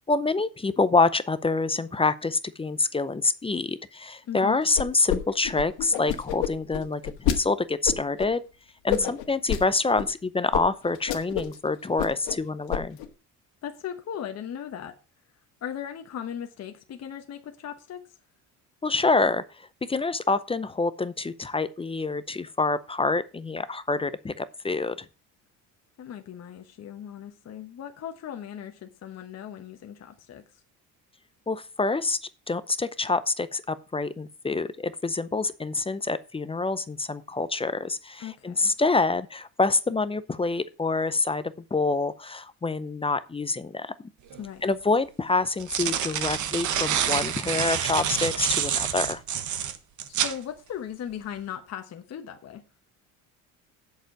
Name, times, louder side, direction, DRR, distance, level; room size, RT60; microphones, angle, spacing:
voice 1, 0.1-8.4 8.8-13.0 18.8-19.4 19.8-25.1 31.5-32.2 32.5-41.4 41.7-43.9 44.6-49.2, left 3 dB, 15° left, 0.6 m, -26 dB
voice 2, 4.3-4.6 8.9-9.1 13.6-14.9 15.6-18.0 26.0-30.4 38.2-38.7 44.4-44.7 50.1-52.6, left 9 dB, 45° left, 1.1 m, -38 dB
sound 1, 4.7-5.2 5.4-7.4 7.8-8.3 8.9-9.6 10.0-10.1 10.5-10.6 10.9-11.6 11.8-12.4 12.7-13.1, left 10 dB, 80° left, 1.6 m, -28 dB
sound 2, 44.3-44.4 45.4-50.4, right 9 dB, 55° right, 1.2 m, -27 dB
7.9 x 6.9 x 5.9 m
cardioid pair, 110°, 36 cm